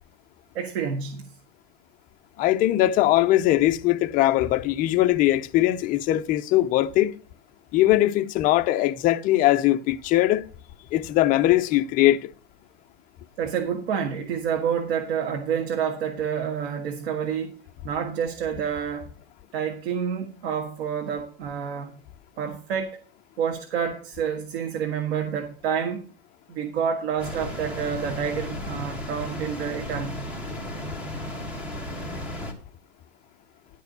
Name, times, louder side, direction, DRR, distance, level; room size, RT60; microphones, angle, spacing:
voice 1, 0.6-1.4 13.4-17.6 17.8-19.1 19.5-22.0 22.4-23.0 23.4-26.0 26.5-30.3, right 7 dB, 90° right, 1.7 m, -28 dB
voice 2, 2.4-7.1 7.7-10.4 10.9-12.3, left 15 dB, 25° left, 0.5 m, -21 dB
sound 1, 27.2-32.5, left 1 dB, 5° right, 1.6 m, -34 dB
11.5 x 4.7 x 6.8 m
supercardioid pair, 160°, 31 cm